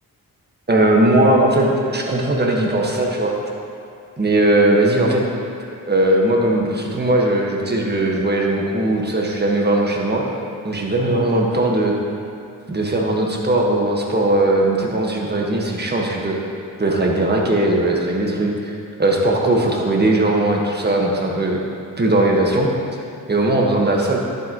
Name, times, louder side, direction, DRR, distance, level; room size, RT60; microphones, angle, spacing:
voice 1, 0.7-3.3 4.2-5.2 5.9-10.2 10.6-11.9 12.7-16.4 16.8-18.7 19.0-21.6 22.0-22.7 23.3-24.2, right 1 dB, 25° right, -1 dB, 1.5 m, -18 dB
11.0 x 7.8 x 3.0 m, 2.5 s
cardioid pair, 65°, 36 cm